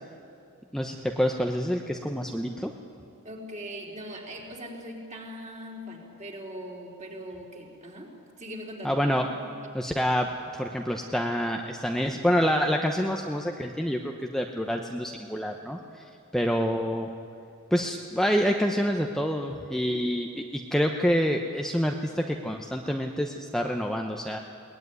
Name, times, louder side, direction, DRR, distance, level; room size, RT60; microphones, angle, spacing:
voice 1, 0.7-2.7 8.8-9.3 9.7-10.3 10.6-16.0 16.3-17.1 17.7-24.4, equal, ahead, 2 dB, 0.9 m, -27 dB
voice 2, 3.2-9.0, equal, 35° right, -1 dB, 3.9 m, -40 dB
21.5 x 19.0 x 9.6 m, 2.6 s
head